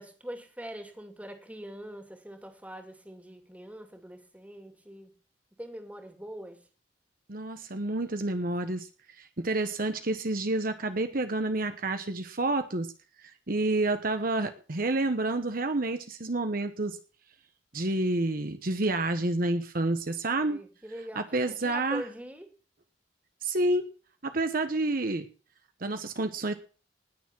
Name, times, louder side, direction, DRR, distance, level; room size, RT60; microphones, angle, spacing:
voice 1, 0.0-5.1 5.6-6.7 20.3-22.5, equal, 10° right, 6 dB, 2.5 m, -43 dB
voice 2, 7.3-8.9 9.2-12.9 13.2-17.0 17.7-20.6 21.1-22.0 23.4-23.9 24.2-25.3 25.8-26.5, right 2 dB, 50° right, 8 dB, 1.1 m, -29 dB
19.5 x 7.2 x 6.0 m, 0.37 s
head